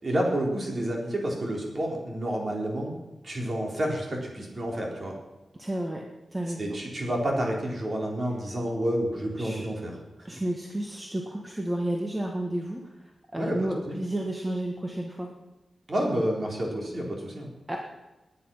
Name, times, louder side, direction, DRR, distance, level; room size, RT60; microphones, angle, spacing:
voice 1, 0.0-2.9 3.2-5.1 6.6-9.9 13.4-13.6 13.9-14.0 15.9-17.5, right 1 dB, 35° right, -1 dB, 4.0 m, -29 dB
voice 2, 5.6-6.0 6.3-6.8 9.4-9.6 10.2-15.3 17.7-17.8, right 1 dB, 15° right, 1 dB, 1.5 m, -31 dB
19.5 x 9.7 x 5.6 m, 1.0 s
wide cardioid pair, 145°, 0 cm